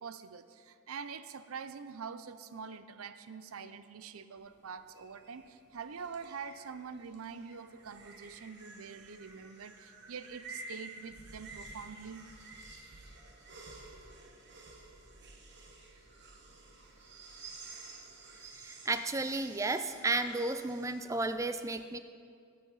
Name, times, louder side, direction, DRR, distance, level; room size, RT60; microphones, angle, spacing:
voice 1, 0.0-12.2, right 6 dB, 85° right, 12 dB, 0.6 m, -45 dB
sound 1, 4.4-21.3, right 3 dB, 55° right, 1.4 m, -52 dB
voice 2, 18.6-22.0, right 3 dB, 15° right, 10 dB, 0.4 m, -33 dB
19.5 x 7.6 x 4.0 m, 2.3 s
head